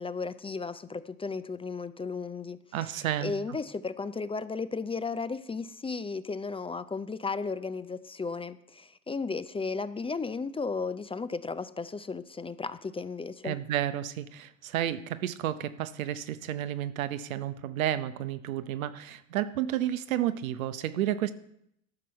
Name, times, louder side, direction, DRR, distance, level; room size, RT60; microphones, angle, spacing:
voice 1, 0.0-13.6, left 4 dB, 15° left, 14 dB, 0.4 m, -35 dB
voice 2, 2.7-3.3 13.4-21.3, right 12 dB, 85° right, 13 dB, 0.8 m, -31 dB
13.5 x 6.1 x 5.6 m, 0.75 s
hypercardioid pair, 70°, 40 cm